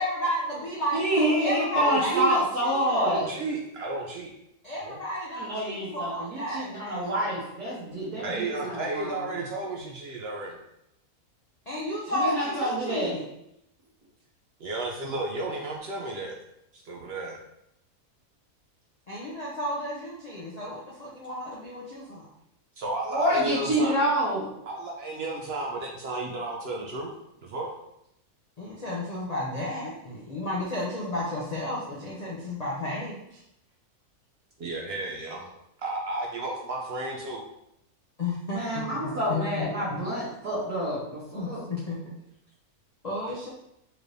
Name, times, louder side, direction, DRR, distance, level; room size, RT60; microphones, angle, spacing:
voice 1, 0.0-3.3 4.6-7.3 11.7-13.3 19.1-22.3 28.6-33.4 38.2-38.8 39.3-40.0 41.3-42.0 43.0-43.5, left 1 dB, 60° left, -5 dB, 0.4 m, -32 dB
voice 2, 0.9-3.2 5.3-9.3 12.1-13.1 23.1-24.4 38.5-41.6, equal, 90° right, -10 dB, 1.6 m, -27 dB
voice 3, 1.7-2.3 2.9-4.3 4.8-5.0 8.2-10.6 14.6-16.3 16.7-17.4 22.8-24.0 24.7-27.1 27.4-27.7 34.6-35.5 35.8-37.4, right 2 dB, 70° right, 0 dB, 0.6 m, -32 dB
4.3 x 3.2 x 2.6 m, 0.80 s
omnidirectional pair, 1.6 m